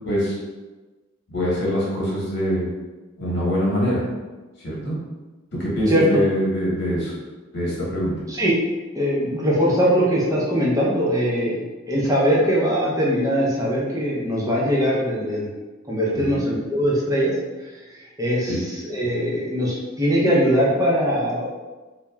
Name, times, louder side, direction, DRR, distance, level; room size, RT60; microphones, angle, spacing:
voice 1, 0.0-0.4 1.3-2.7 3.2-4.0 4.6-5.0 5.6-7.1 7.5-8.2 16.1-16.3 18.5-18.6, equal, 60° left, -6 dB, 1.0 m, -23 dB
voice 2, 5.9-6.2 8.3-8.5 8.9-15.5 15.9-17.4 17.9-21.5, equal, 15° right, -5 dB, 0.5 m, -21 dB
2.8 x 2.0 x 2.2 m, 1.2 s
head